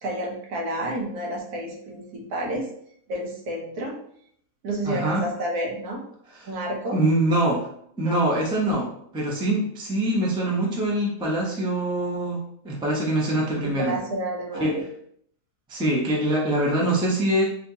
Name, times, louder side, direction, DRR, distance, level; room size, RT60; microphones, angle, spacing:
voice 1, 0.0-2.7 3.1-3.9 4.6-6.0 6.5-7.0 8.1-8.2 13.6-14.8, right 1 dB, 80° right, -1 dB, 1.4 m, -30 dB
voice 2, 4.8-5.2 6.3-6.5 6.9-7.7 8.0-12.4 12.6-14.0 14.6-14.7 15.7-17.4, right 1 dB, 10° right, -3 dB, 0.3 m, -24 dB
4.2 x 2.4 x 2.7 m, 0.66 s
omnidirectional pair, 1.6 m